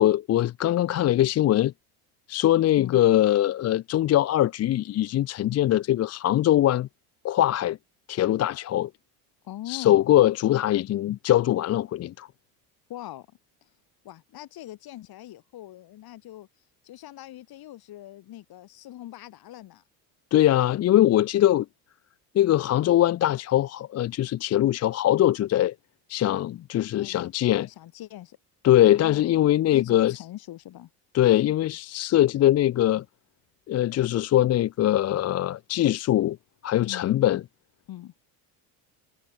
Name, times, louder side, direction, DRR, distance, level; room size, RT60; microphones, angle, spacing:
voice 1, 0.0-1.7 2.3-6.9 7.2-7.8 8.1-8.9 9.7-12.3 20.3-21.7 22.3-25.7 26.1-27.7 28.6-30.1 31.1-33.0 33.7-36.4 36.6-37.4, left 13 dB, 35° left, 0.6 m, -22 dB
voice 2, 9.4-10.0 12.9-13.7 14.0-16.5 16.8-19.8 27.0-28.4 28.9-30.9 36.8-37.1 37.9-38.1, left 14 dB, 55° left, 5.3 m, -42 dB
supercardioid pair, 105°, 44 cm